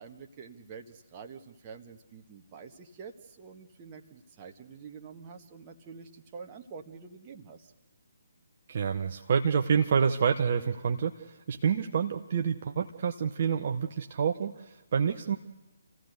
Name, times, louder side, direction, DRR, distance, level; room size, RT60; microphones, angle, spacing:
voice 1, 0.0-7.7, right 5 dB, 25° right, 4 dB, 1.6 m, -47 dB
voice 2, 8.7-15.4, right 6 dB, 45° right, 4 dB, 1.0 m, -28 dB
28.5 x 15.5 x 6.7 m, 1.1 s
figure-of-eight pair, 140°, 0 cm